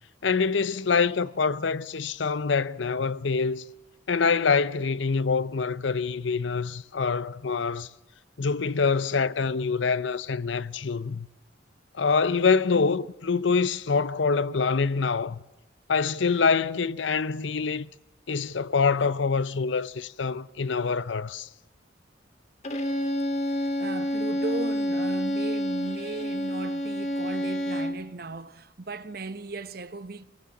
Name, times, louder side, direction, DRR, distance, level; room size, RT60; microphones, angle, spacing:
voice 1, 0.2-3.6 4.1-7.9 8.4-11.3 12.0-15.4 15.9-17.9 18.3-21.5, left 5 dB, 75° left, 0.6 m, -25 dB
Bowed string instrument, 22.6-28.1, equal, 35° left, 1.6 m, -28 dB
voice 2, 23.5-30.2, right 3 dB, 50° right, 1.0 m, -37 dB
26.0 x 18.0 x 7.1 m
head